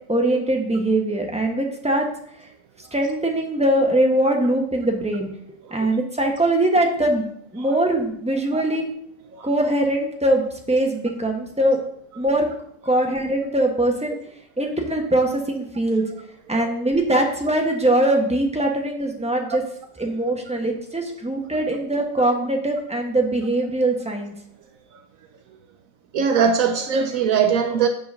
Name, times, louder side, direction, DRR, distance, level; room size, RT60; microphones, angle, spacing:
voice 1, 0.1-2.1 2.9-5.3 5.7-7.3 7.5-8.8 9.4-11.8 12.2-12.5 12.8-14.2 14.6-16.0 16.5-19.6 20.0-24.3, right 1 dB, 5° right, 1.1 m, -22 dB
voice 2, 26.1-27.9, right 6 dB, 75° right, 1.0 m, -21 dB
7.8 x 3.9 x 6.4 m
omnidirectional pair, 1.5 m